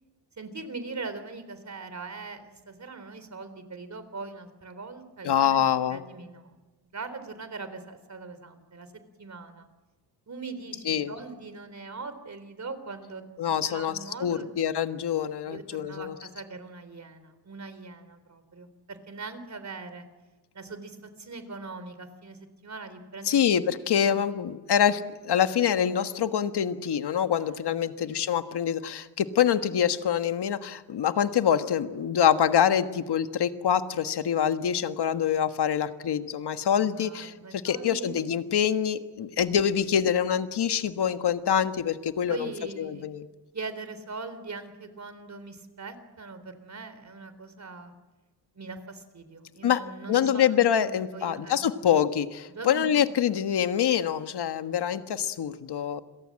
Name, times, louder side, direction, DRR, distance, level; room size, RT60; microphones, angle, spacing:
voice 1, 0.4-5.6 5.9-6.5 6.9-8.9 9.2-9.7 10.3-13.2 13.6-14.5 15.5-20.1 20.5-23.4 23.9-24.2 27.4-27.5 28.0-28.2 36.8-38.2 42.3-43.1 43.5-47.9 48.5-51.9 52.5-52.9, right 4 dB, 45° right, 11 dB, 3.8 m, -41 dB
voice 2, 5.2-6.0 10.8-11.1 13.4-13.9 14.2-16.1 23.2-42.5 42.8-43.3 49.6-49.8 50.1-56.0, left 9 dB, 75° left, 9 dB, 1.5 m, -25 dB
29.5 x 22.5 x 7.6 m, 1.2 s
cardioid pair, 105°, 40 cm